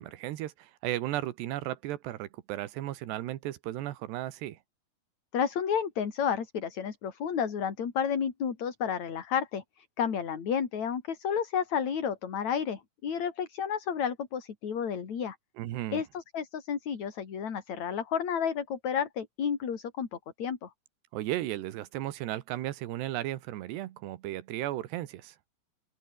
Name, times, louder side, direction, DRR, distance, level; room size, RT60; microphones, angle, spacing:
voice 1, 0.0-4.6 15.6-16.0 21.1-25.4, right 14 dB, 85° right, 3.5 m, -35 dB
voice 2, 5.3-15.4 15.9-20.1 20.4-20.7, left 7 dB, 45° left, 3.9 m, -31 dB
open air
omnidirectional pair, 4.7 m